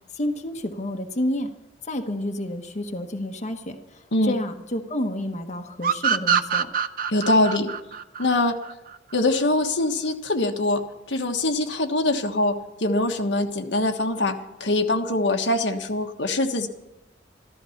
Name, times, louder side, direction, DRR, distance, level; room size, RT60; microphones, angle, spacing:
voice 1, 0.1-1.5 1.8-6.7, left 1 dB, 40° left, 4 dB, 1.2 m, -29 dB
sound 1, 5.8-9.2, right 7 dB, 50° right, 0.7 m, -24 dB
voice 2, 7.1-7.7 8.2-8.6 9.1-10.8 11.1-16.7, left 2 dB, 80° left, 4 dB, 1.4 m, -23 dB
14.0 x 13.5 x 5.8 m, 0.95 s
head